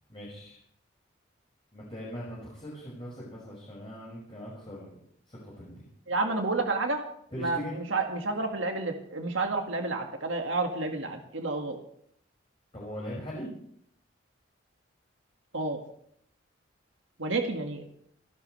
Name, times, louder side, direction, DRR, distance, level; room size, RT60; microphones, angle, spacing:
voice 1, 0.1-0.6 1.7-5.0 5.3-5.8 7.3-7.8 12.7-13.5, equal, 25° left, -6 dB, 5.9 m, -40 dB
voice 2, 6.1-7.0 7.4-11.8 15.5-15.8 17.2-17.8, right 3 dB, 80° right, 3 dB, 1.9 m, -30 dB
29.5 x 11.0 x 3.3 m, 0.68 s
head